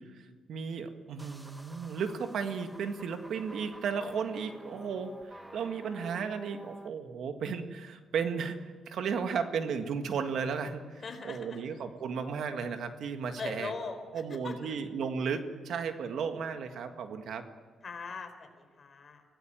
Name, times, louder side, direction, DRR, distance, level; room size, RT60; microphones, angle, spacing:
voice 1, 0.1-8.6 8.9-13.7 14.1-17.5, right 6 dB, 75° right, 7 dB, 1.8 m, -34 dB
sound 1, 1.2-6.9, right 1 dB, 5° right, 1.4 m, -49 dB
voice 2, 11.0-11.6 13.4-14.0 14.3-14.6 17.8-19.2, left 4 dB, 40° left, 6 dB, 4.1 m, -40 dB
25.5 x 18.0 x 9.0 m, 1.5 s
cardioid pair, 105°, 0 cm